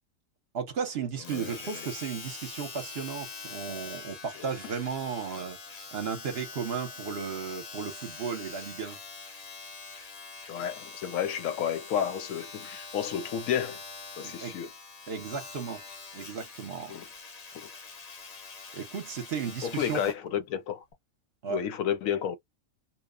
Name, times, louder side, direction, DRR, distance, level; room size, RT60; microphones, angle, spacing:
voice 1, 0.5-5.6 5.9-9.0 14.2-14.6 15.1-15.8 16.1-16.9 18.7-20.0 21.4-21.6, right 6 dB, 55° right, 0.8 m, -35 dB
Domestic sounds home sounds, 1.2-20.2 20.9-21.0, left 4 dB, 40° left, 0.6 m, -44 dB
voice 2, 1.3-1.6 4.4-4.5 10.5-13.8 14.2-14.7 16.9-17.1 17.5-17.7 19.6-20.8 21.5-22.4, left 9 dB, 80° left, 1.0 m, -31 dB
2.9 x 2.0 x 2.3 m
omnidirectional pair, 1.4 m